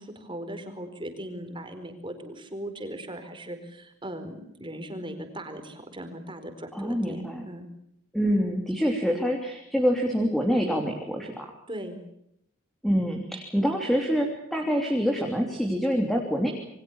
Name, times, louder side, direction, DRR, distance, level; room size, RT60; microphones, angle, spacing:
voice 1, 0.0-7.6 11.7-12.0, right 1 dB, 25° right, 7 dB, 4.5 m, -38 dB
voice 2, 6.7-7.4 8.1-11.5 12.8-16.5, equal, ahead, 2 dB, 3.2 m, -26 dB
28.0 x 23.5 x 7.3 m, 0.75 s
head